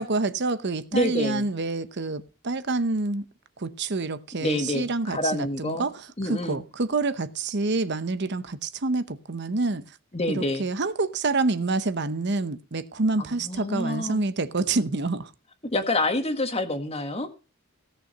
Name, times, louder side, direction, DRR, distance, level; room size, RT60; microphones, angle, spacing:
voice 1, 0.0-3.2 3.6-9.8 10.3-15.3, right 3 dB, 55° right, 0.9 m, -27 dB
voice 2, 0.9-1.5 4.4-5.9 6.2-6.6 10.1-10.6 13.2-14.2 15.7-17.3, left 1 dB, 30° left, 1.6 m, -27 dB
17.0 x 6.7 x 5.3 m
head